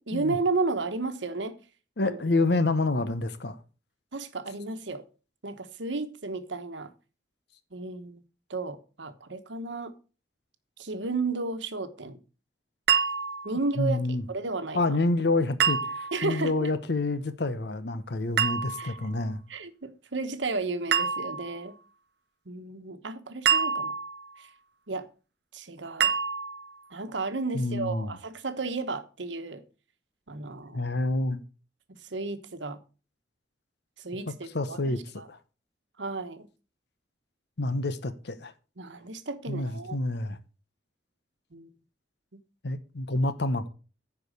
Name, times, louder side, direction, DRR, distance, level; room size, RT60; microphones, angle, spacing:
voice 1, 0.0-1.6 2.0-2.2 4.1-5.0 5.4-6.9 7.7-8.2 8.5-9.9 10.8-12.2 13.4-15.0 16.1-16.7 18.8-18.9 19.5-21.7 22.5-23.9 24.4-24.5 24.9-25.1 25.5-26.1 26.9-29.6 30.3-30.8 32.1-32.8 34.0-35.3 36.0-36.5 38.8-40.0 41.5-41.7, right 3 dB, 85° right, 1.2 m, -33 dB
voice 2, 2.0-3.6 13.8-14.2 14.7-19.4 27.5-28.1 30.7-31.4 34.4-35.0 35.3-35.4 37.6-38.5 39.5-40.4 42.6-43.7, left 2 dB, 65° left, 0.9 m, -28 dB
sound 1, 12.9-13.6 15.6-16.3 18.4-19.1 20.9-21.6 23.5-24.3 26.0-26.7, right 7 dB, 60° right, 0.5 m, -27 dB
10.0 x 4.8 x 6.5 m
head